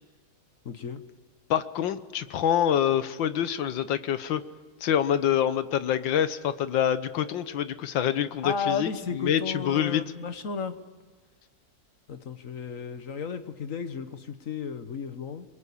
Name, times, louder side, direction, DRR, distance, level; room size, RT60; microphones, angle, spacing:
voice 1, 0.6-1.0 8.4-10.8 12.1-15.4, left 5 dB, 50° left, 10 dB, 1.5 m, -33 dB
voice 2, 1.5-4.4 4.8-10.0, left 9 dB, 90° left, 12 dB, 1.7 m, -26 dB
27.5 x 22.5 x 8.6 m, 1.4 s
omnidirectional pair, 2.0 m